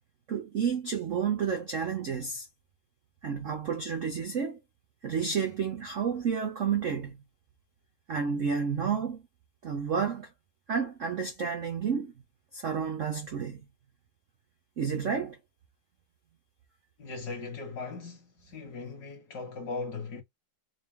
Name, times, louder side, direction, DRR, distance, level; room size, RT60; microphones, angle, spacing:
voice 1, 0.3-2.5 3.2-4.6 5.0-7.2 8.1-9.2 9.6-10.3 10.7-12.1 12.5-13.6 14.8-15.4, right 6 dB, 85° right, 0.6 m, -30 dB
voice 2, 17.0-20.2, left 4 dB, 55° left, 1.5 m, -38 dB
3.8 x 2.3 x 3.5 m
omnidirectional pair, 2.4 m